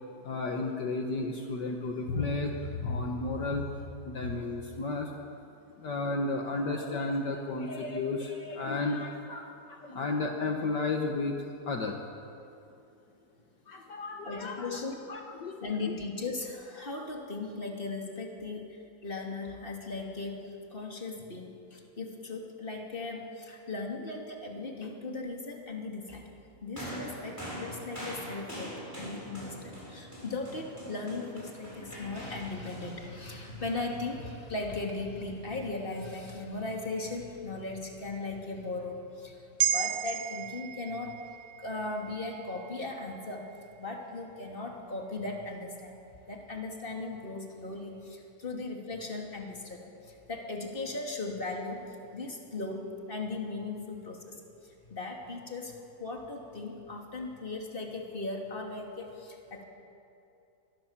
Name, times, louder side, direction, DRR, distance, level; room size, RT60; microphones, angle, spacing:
voice 1, 0.2-3.6 4.1-5.1 5.8-11.4 11.7-12.0 13.7-14.7 15.1-15.7, left 3 dB, 65° left, 2 dB, 2.0 m, -33 dB
voice 2, 14.2-15.0 15.6-26.3 26.6-41.1 41.6-43.5 43.8-46.0 46.3-54.4 54.6-59.6, left 3 dB, 25° left, 0 dB, 2.9 m, -38 dB
sound 1, 26.8-34.3 35.3-35.4, equal, 10° left, 7.2 m, -43 dB
sound 2, 39.6-44.1 44.5-44.6, right 10 dB, 90° right, 1.7 m, -35 dB
24.5 x 20.0 x 7.4 m, 2.7 s
omnidirectional pair, 2.1 m